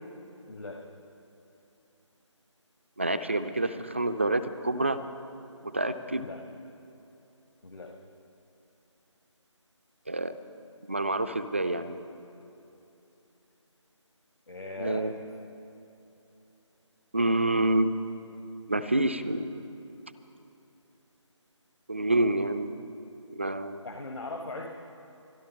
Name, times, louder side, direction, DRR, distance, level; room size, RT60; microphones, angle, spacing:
voice 1, 0.5-0.8 6.2-6.4 7.6-7.9 14.5-15.1 23.8-24.7, left 2 dB, 60° left, 3 dB, 1.3 m, -39 dB
voice 2, 3.0-5.0 5.6-6.2 10.1-10.3 10.9-12.0 14.8-15.1 17.1-17.9 18.7-19.6 21.9-22.7 23.3-23.8, right 2 dB, 25° right, 12 dB, 0.4 m, -27 dB
25.0 x 11.5 x 3.7 m, 2.9 s
figure-of-eight pair, 160°, 16 cm